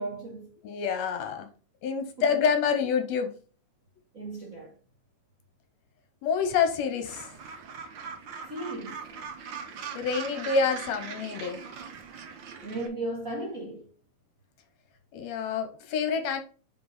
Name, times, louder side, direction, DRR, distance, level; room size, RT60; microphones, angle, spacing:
voice 1, 0.0-0.6 2.2-2.4 4.1-4.7 8.5-9.0 12.6-13.9, right 2 dB, 45° right, 1.2 m, -36 dB
voice 2, 0.6-1.5 1.8-3.3 6.2-7.3 10.0-11.6 15.1-16.4, left 6 dB, 70° left, 2.1 m, -27 dB
Gull seagull, 7.0-12.9, right 6 dB, 70° right, 1.1 m, -41 dB
5.4 x 5.3 x 4.0 m
omnidirectional pair, 3.3 m